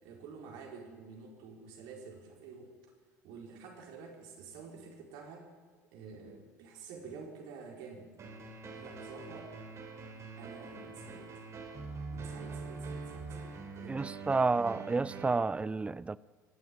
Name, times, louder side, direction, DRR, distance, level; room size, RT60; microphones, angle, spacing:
voice 1, 0.0-2.7 3.2-5.5 5.9-8.1 8.6-9.5 10.4-11.3 12.1-14.0, right 5 dB, 55° right, 4.6 m, -49 dB
sound 1, 8.2-15.3, right 4 dB, 35° right, 3.2 m, -44 dB
voice 2, 13.9-16.2, right 3 dB, 15° right, 0.5 m, -30 dB
24.0 x 12.0 x 9.1 m
figure-of-eight pair, 65°, 9 cm